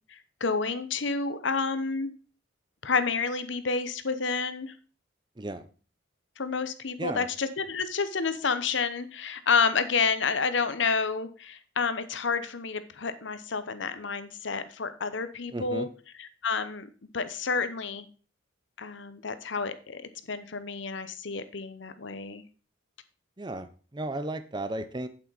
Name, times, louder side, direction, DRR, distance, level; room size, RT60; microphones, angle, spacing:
voice 1, 0.1-2.1 2.8-4.7 6.4-15.9 16.4-18.1 18.8-22.4, left 5 dB, 65° left, 12 dB, 0.8 m, -29 dB
voice 2, 5.4-5.7 7.0-7.3 15.5-15.9 23.4-25.1, right 2 dB, 20° right, 11 dB, 0.6 m, -34 dB
8.6 x 7.6 x 4.0 m, 0.38 s
head